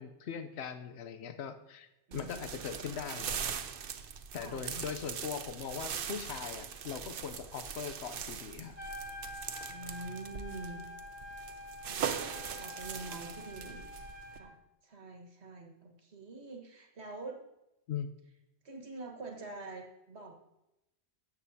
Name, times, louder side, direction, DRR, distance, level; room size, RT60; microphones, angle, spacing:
voice 1, 0.0-3.5 4.3-8.7 17.9-18.1, left 7 dB, 85° left, 9 dB, 1.0 m, -40 dB
sound 1, 2.1-14.4, right 7 dB, 60° right, 0.8 m, -41 dB
voice 2, 2.1-2.5 4.4-4.6 9.7-10.8 11.3-11.4 11.9-12.3 12.5-13.8 14.3-14.6 14.8-17.4 18.7-20.4, right 3 dB, 80° right, 2 dB, 1.7 m, -45 dB
Trumpet, 8.7-14.5, left 1 dB, 10° right, 1.4 m, -46 dB
13.0 x 8.3 x 2.7 m, 0.89 s
omnidirectional pair, 1.1 m